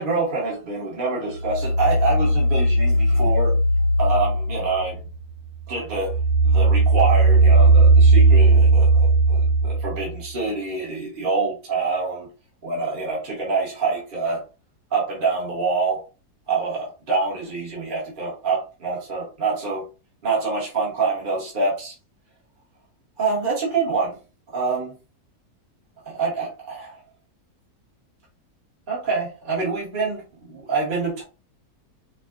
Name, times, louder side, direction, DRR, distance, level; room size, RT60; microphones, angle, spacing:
voice 1, 0.0-3.5 4.0-5.0 5.7-6.1 6.4-12.3 12.6-14.4 14.9-16.0 16.5-19.9 20.2-21.9 23.2-24.2 24.5-24.9 26.0-27.0 28.9-31.2, right 4 dB, 35° right, -4 dB, 1.4 m, -26 dB
sound 1, 1.4-5.2 5.6-10.2, right 2 dB, 85° right, 1.5 m, -17 dB
4.9 x 2.3 x 2.5 m, 0.32 s
omnidirectional pair, 1.7 m